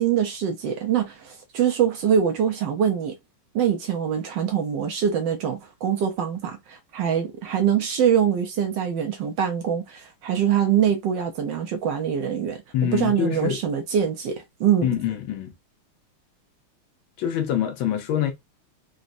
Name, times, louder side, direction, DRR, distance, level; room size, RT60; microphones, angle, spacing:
voice 1, 0.0-3.2 3.5-14.9, right 8 dB, 70° right, 1.2 m, -24 dB
voice 2, 12.7-13.6 14.8-15.5 17.2-18.3, left 10 dB, 75° left, 1.5 m, -25 dB
4.0 x 2.2 x 2.5 m
omnidirectional pair, 2.3 m